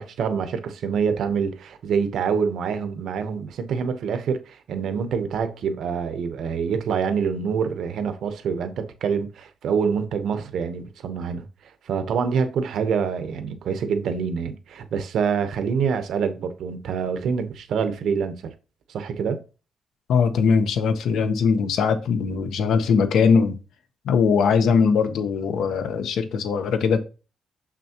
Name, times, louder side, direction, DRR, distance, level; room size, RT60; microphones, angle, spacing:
voice 1, 0.0-11.5 11.9-18.4 18.9-19.4, right 6 dB, 65° right, 0.9 m, -26 dB
voice 2, 20.1-23.6 24.0-27.0, left 6 dB, 75° left, 0.9 m, -20 dB
6.7 x 6.0 x 2.9 m
cardioid pair, 170°, 0 cm